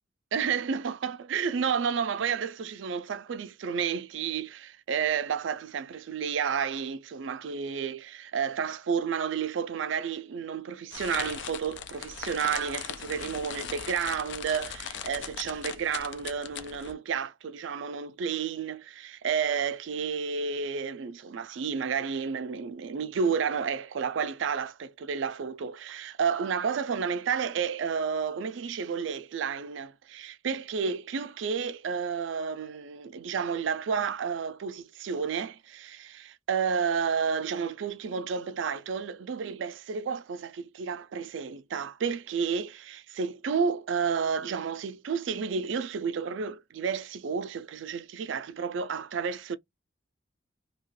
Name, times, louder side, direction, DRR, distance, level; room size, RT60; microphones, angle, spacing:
voice 1, 0.3-49.6, right 6 dB, 80° right, 0.4 m, -31 dB
sound 1, 10.9-16.9, left 8 dB, 70° left, 0.4 m, -39 dB
2.8 x 2.2 x 3.1 m
head